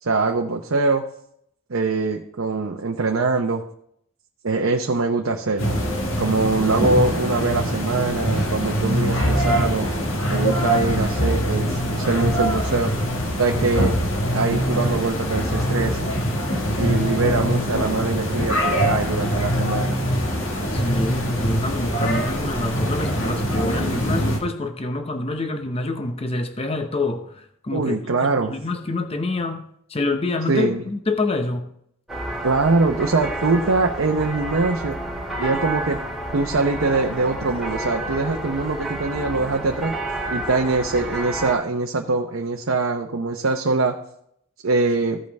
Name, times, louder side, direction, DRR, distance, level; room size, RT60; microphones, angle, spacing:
voice 1, 0.0-1.0 1.7-3.6 4.4-5.8 6.2-9.9 10.3-12.9 13.4-14.0 14.3-16.0 16.8-20.0 27.7-28.5 30.5-30.8 32.4-35.0 35.4-36.0 36.3-39.9 40.3-44.0 44.6-45.2, right 3 dB, 80° right, 2 dB, 0.7 m, -23 dB
sound 1, 5.6-24.4, equal, 75° left, 1.8 m, -23 dB
voice 2, 20.5-31.7, left 2 dB, 30° left, 7 dB, 0.7 m, -27 dB
sound 2, 32.1-41.6, right 1 dB, ahead, 2.0 m, -30 dB
15.0 x 5.4 x 3.5 m, 0.70 s
head